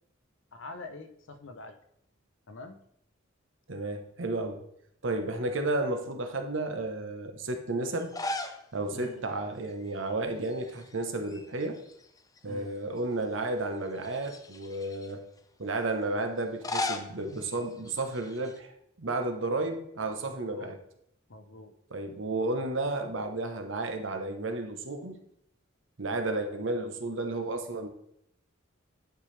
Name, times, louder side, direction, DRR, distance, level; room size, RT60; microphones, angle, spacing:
voice 1, 0.5-1.7 2.5-2.8 8.9-9.2 12.4-12.8 20.3-20.8 21.3-21.7, left 2 dB, 70° left, 7 dB, 0.8 m, -45 dB
voice 2, 3.7-4.6 5.0-8.1 8.7-11.8 12.4-15.2 15.6-20.8 21.9-25.2 26.0-27.9, right 2 dB, 65° right, 5 dB, 0.9 m, -32 dB
sound 1, 8.0-8.7 9.0-9.1 10.4-10.9 11.2-12.4 13.0-13.1 14.0-15.1 16.4-18.6, left 2 dB, 20° left, 0.5 m, -37 dB
10.0 x 4.7 x 3.3 m, 0.73 s
head